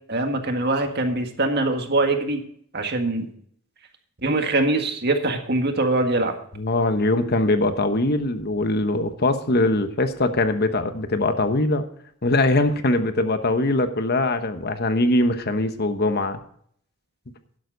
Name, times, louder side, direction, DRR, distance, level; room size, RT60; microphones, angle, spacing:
voice 1, 0.1-2.4 2.7-3.3 4.2-6.3, right 2 dB, 50° right, 5 dB, 1.8 m, -23 dB
voice 2, 6.6-11.8 12.2-16.4, left 2 dB, 50° left, 8 dB, 1.2 m, -22 dB
11.5 x 11.5 x 4.0 m, 0.62 s
head